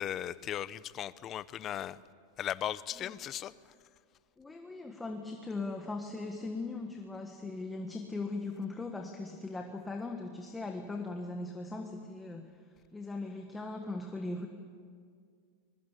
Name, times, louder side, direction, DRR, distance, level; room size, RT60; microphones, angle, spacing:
voice 1, 0.0-2.0 2.4-3.5, left 11 dB, 30° left, 17 dB, 0.7 m, -37 dB
voice 2, 4.4-12.5 12.9-14.5, left 3 dB, 10° left, 3 dB, 1.5 m, -39 dB
25.0 x 21.5 x 8.3 m, 2.1 s
supercardioid pair, 155°, 0 cm